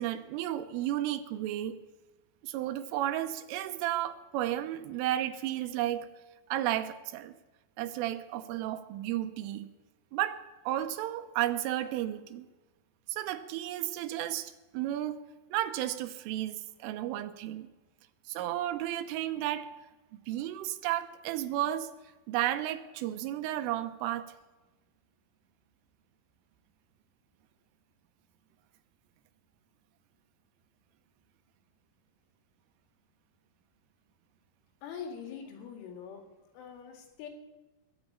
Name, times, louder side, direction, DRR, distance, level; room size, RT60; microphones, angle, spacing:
voice 1, 0.0-1.8 2.4-6.1 6.5-7.3 7.8-9.7 10.1-10.4 10.7-12.4 13.1-15.2 15.5-17.7 18.3-19.7 20.3-21.9 22.3-24.3, right 13 dB, 85° right, 9 dB, 3.4 m, -33 dB
voice 2, 34.8-36.2 36.5-37.3, left 7 dB, 75° left, 4 dB, 4.5 m, -43 dB
21.0 x 7.1 x 8.6 m, 1.1 s
omnidirectional pair, 5.8 m